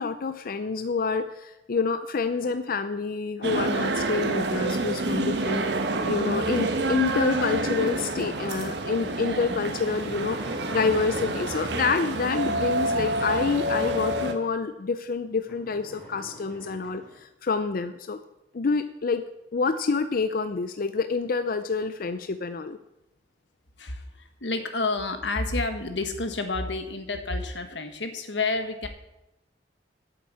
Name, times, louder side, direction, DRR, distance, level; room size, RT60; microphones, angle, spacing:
voice 1, 0.0-18.2 18.5-19.2 19.5-22.8, left 4 dB, 55° left, 10 dB, 0.5 m, -28 dB
sound 1, 3.4-14.3, right 2 dB, 70° right, 1.3 m, -28 dB
sound 2, 7.5-12.0 12.5-14.6 15.0-15.1 15.4-17.2, equal, 5° left, 3.5 m, -46 dB
voice 2, 23.8-28.9, left 3 dB, 85° left, 7 dB, 1.5 m, -29 dB
8.6 x 8.1 x 8.5 m, 0.92 s
head